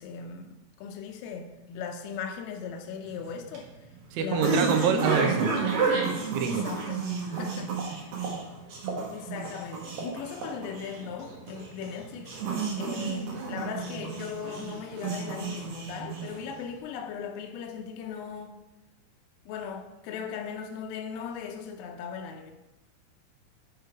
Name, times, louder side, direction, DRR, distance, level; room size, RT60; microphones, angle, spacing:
voice 1, 0.0-3.7 4.1-4.7 6.5-8.1 9.1-12.3 12.8-18.6 19.5-22.5, left 6 dB, 85° left, 3.5 m, -38 dB
sound 1, 3.1-16.6, right 4 dB, 60° right, 2.6 m, -31 dB
voice 2, 4.1-5.5 6.3-6.6, right 6 dB, 80° right, 3.1 m, -26 dB
12.5 x 4.7 x 4.6 m
omnidirectional pair, 5.8 m